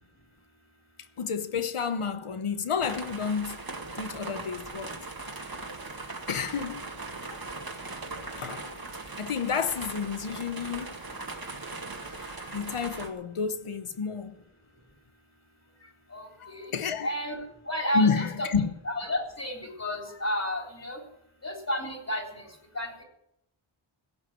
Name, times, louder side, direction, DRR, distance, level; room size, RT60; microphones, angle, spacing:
voice 1, 1.2-3.6 3.9-5.0 6.3-6.8 7.3-7.4 8.4-8.7 9.2-11.0 12.0-14.3 16.7-17.1 17.9-18.7, left 6 dB, 85° left, 1.1 m, -30 dB
sound 1, 2.8-13.1, right 3 dB, 45° right, 2.1 m, -39 dB
voice 2, 16.1-16.7 17.0-17.4 17.7-18.5 18.9-21.0 21.4-22.4 22.7-23.0, left 1 dB, 30° left, 3.8 m, -31 dB
16.5 x 6.1 x 9.4 m
wide cardioid pair, 75°, 49 cm